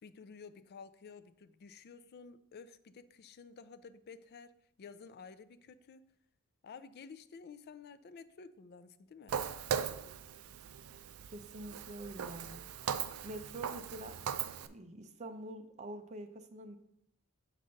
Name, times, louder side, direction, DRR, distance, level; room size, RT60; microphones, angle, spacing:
voice 1, 0.0-4.5 4.8-6.1 6.6-9.4, left 5 dB, 50° left, 12 dB, 0.4 m, -52 dB
Walk footsteps, 9.3-14.7, right 8 dB, 80° right, 0.4 m, -39 dB
voice 2, 11.3-12.6 13.2-14.2 14.6-16.8, right 1 dB, 35° right, 5 dB, 0.6 m, -46 dB
6.7 x 5.0 x 4.0 m, 0.76 s
head